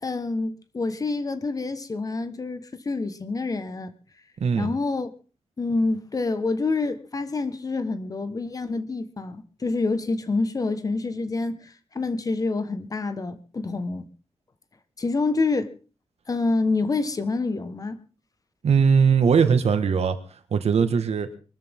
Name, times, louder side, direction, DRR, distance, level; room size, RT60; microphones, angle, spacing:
voice 1, 0.0-3.9 4.6-5.1 5.6-14.1 15.0-15.7 16.3-18.0, left 3 dB, 35° left, 1.4 m, -27 dB
voice 2, 4.4-4.7 18.6-20.2 20.5-21.3, right 6 dB, 85° right, 1.7 m, -20 dB
23.5 x 13.5 x 3.7 m
wide cardioid pair, 155°, 11 cm